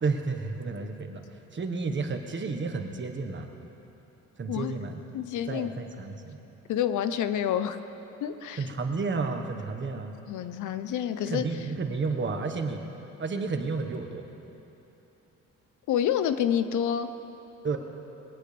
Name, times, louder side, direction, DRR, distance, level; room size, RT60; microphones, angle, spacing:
voice 1, 0.0-3.5 4.4-5.0 5.5-6.4 8.6-10.1 11.2-12.8 13.2-14.2 17.6-17.8, right 4 dB, 40° right, 4 dB, 1.5 m, -31 dB
voice 2, 4.5-4.9 5.1-5.7 6.7-7.8 8.2-8.6 10.3-11.4 15.9-17.1, left 9 dB, 80° left, 10 dB, 0.8 m, -28 dB
21.0 x 18.0 x 3.5 m, 3.0 s
cardioid pair, 90°, 30 cm